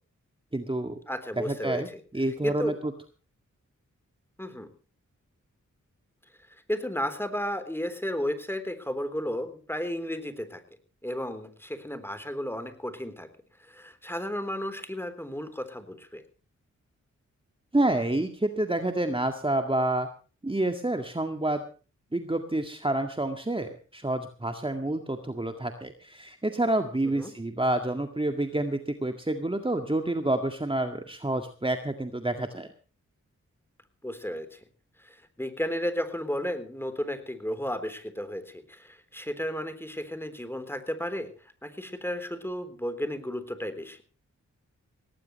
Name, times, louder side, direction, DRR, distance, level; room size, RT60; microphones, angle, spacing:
voice 1, 0.5-1.0 1.4-1.9 2.1-2.9 17.7-20.1 20.4-21.6 22.1-32.7, right 1 dB, 15° right, 6 dB, 1.9 m, -28 dB
voice 2, 1.1-1.8 2.4-2.7 4.4-4.7 6.7-10.6 11.0-13.3 13.7-16.2 27.2-27.3 34.0-34.6 35.0-41.3 41.6-44.0, equal, 5° left, 10 dB, 3.7 m, -33 dB
18.5 x 18.0 x 3.2 m, 0.37 s
cardioid pair, 45°, 31 cm